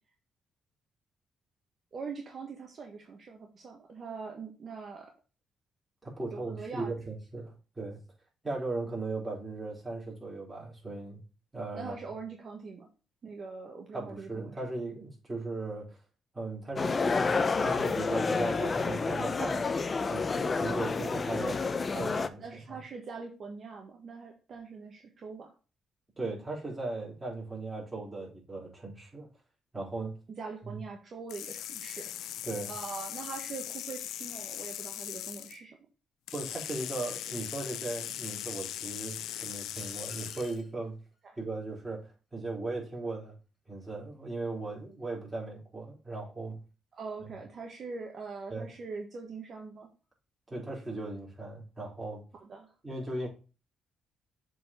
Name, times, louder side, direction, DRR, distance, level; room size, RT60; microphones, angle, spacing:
voice 1, 1.9-5.1 6.3-6.9 11.7-12.9 13.2-14.6 22.4-25.5 30.4-32.4 32.7-35.8 46.9-49.9 52.4-52.7, right 4 dB, 50° right, 1.3 m, -42 dB
voice 2, 6.0-8.0 8.4-11.2 11.5-12.0 13.9-16.0 16.3-19.7 20.1-21.6 21.9-22.8 26.2-29.3 29.7-30.2 30.6-30.8 32.4-32.7 36.3-41.0 41.4-43.4 43.7-46.6 47.2-47.3 48.5-48.7 50.5-52.3 52.8-53.3, right 2 dB, 15° right, 4.2 m, -37 dB
sound 1, 16.8-22.3, left 4 dB, 35° left, 0.7 m, -29 dB
sound 2, 31.3-35.6 36.3-40.6, left 11 dB, 85° left, 0.6 m, -39 dB
sound 3, 39.8-40.8, left 2 dB, 15° left, 2.6 m, -52 dB
7.4 x 4.2 x 4.3 m
cardioid pair, 90°, 0 cm